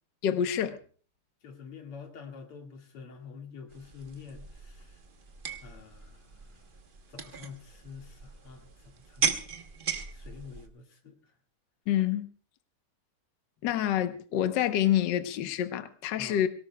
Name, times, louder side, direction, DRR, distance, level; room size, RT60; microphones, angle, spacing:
voice 1, 0.2-0.8 11.9-12.3 13.6-16.5, left 11 dB, 60° left, 1.4 m, -27 dB
voice 2, 1.4-4.9 5.6-6.6 7.1-9.3 10.1-11.1 16.2-16.4, left 5 dB, 85° left, 3.0 m, -47 dB
sound 1, 3.7-10.7, right 6 dB, 45° right, 0.6 m, -37 dB
23.0 x 18.0 x 2.2 m
omnidirectional pair, 2.4 m